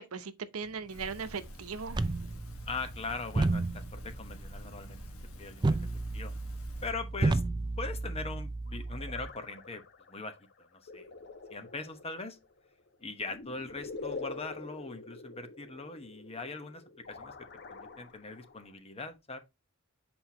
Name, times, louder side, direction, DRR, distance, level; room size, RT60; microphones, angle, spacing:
voice 1, 0.0-2.1, right 5 dB, 85° right, 0.7 m, -39 dB
sound 1, 0.9-6.9, equal, 90° left, 1.4 m, -49 dB
sound 2, 1.9-9.3, right 2 dB, 20° right, 0.4 m, -33 dB
voice 2, 2.7-5.9 6.1-6.3 6.8-7.4 7.8-9.8 10.1-11.1 11.5-12.4 13.0-16.8 17.1-17.4 17.7-19.4, left 3 dB, 30° left, 1.0 m, -41 dB
sound 3, 8.7-18.7, left 3 dB, 55° left, 0.9 m, -46 dB
7.8 x 4.4 x 2.8 m
head